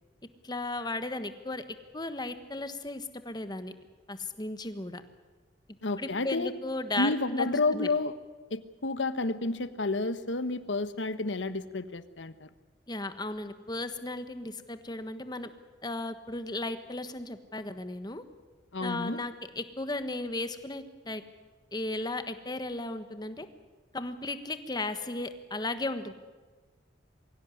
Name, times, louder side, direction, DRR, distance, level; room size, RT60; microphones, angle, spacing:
voice 1, 0.4-1.6 1.9-3.7 4.1-5.0 6.0-7.9 12.9-15.5 15.8-18.2 18.8-21.2 21.7-23.5 23.9-26.1, left 2 dB, 25° left, 10 dB, 1.4 m, -35 dB
voice 2, 5.8-6.5 7.0-8.1 8.5-12.5 18.7-19.2, left 3 dB, 90° left, 12 dB, 1.2 m, -30 dB
23.5 x 16.5 x 9.8 m, 1.4 s
head